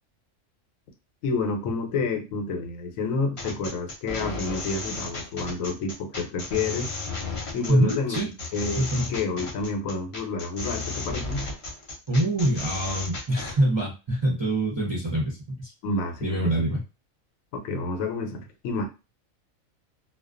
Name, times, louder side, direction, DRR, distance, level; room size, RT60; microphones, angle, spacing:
voice 1, 1.2-6.9 7.5-8.2 8.5-11.5 15.8-16.7 17.5-18.9, left 3 dB, 80° left, 4 dB, 1.0 m, -29 dB
sound 1, 3.4-13.6, left 3 dB, 50° left, 0.4 m, -34 dB
voice 2, 7.7-8.3 8.8-9.0 12.1-15.7 16.2-16.8, right 1 dB, 35° right, -5 dB, 0.4 m, -24 dB
2.3 x 2.2 x 2.4 m, 0.28 s
omnidirectional pair, 1.4 m